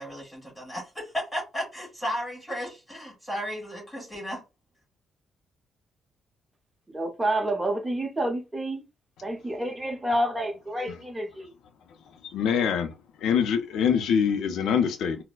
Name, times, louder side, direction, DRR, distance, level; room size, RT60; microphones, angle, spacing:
voice 1, 0.0-4.4, equal, 10° left, 1.8 m, -34 dB
voice 2, 6.9-8.8 9.2-11.5, right 1 dB, 15° right, 0.9 m, -29 dB
voice 3, 12.3-12.9 13.2-15.2, left 7 dB, 80° left, 0.5 m, -24 dB
4.2 x 2.0 x 2.3 m
cardioid pair, 90°, 0 cm